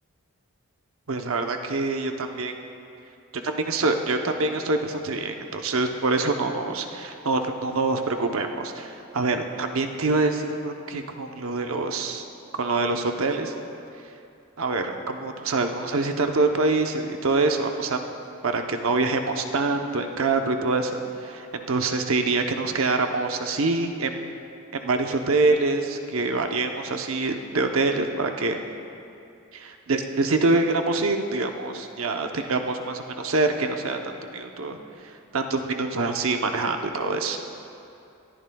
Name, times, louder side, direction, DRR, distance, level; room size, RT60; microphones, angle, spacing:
voice 1, 1.1-2.5 3.4-12.2 12.6-13.5 14.6-18.0 18.4-24.1 24.7-28.6 29.5-34.0 34.3-34.8 35.3-37.4, right 3 dB, 70° right, 5 dB, 0.8 m, -25 dB
20.5 x 13.5 x 2.3 m, 2.7 s
head